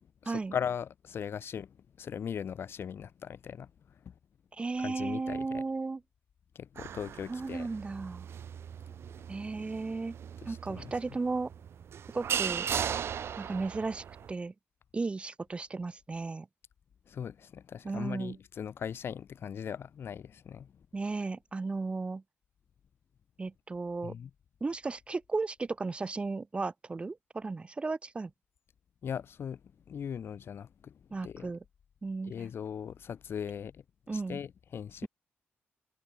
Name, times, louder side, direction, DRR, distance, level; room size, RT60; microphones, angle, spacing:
voice 1, 0.2-3.7 4.0-4.1 4.8-5.6 6.5-7.7 8.9-9.0 10.4-11.2 17.1-20.7 24.0-24.3 29.0-29.6 29.9-31.5 32.2-33.8 34.1-35.1, left 8 dB, 65° left, 1.0 m, -39 dB
voice 2, 4.6-6.0 7.3-8.3 9.3-10.1 10.5-11.5 12.1-12.7 13.4-14.5 14.9-16.5 17.8-18.4 20.9-22.2 23.4-24.1 24.6-28.3 31.1-31.6 32.0-32.3 34.1-34.4, right 3 dB, 25° right, 0.6 m, -35 dB
sound 1, 6.8-14.3, right 8 dB, 75° right, 1.9 m, -38 dB
wide cardioid pair, 115°, 4 cm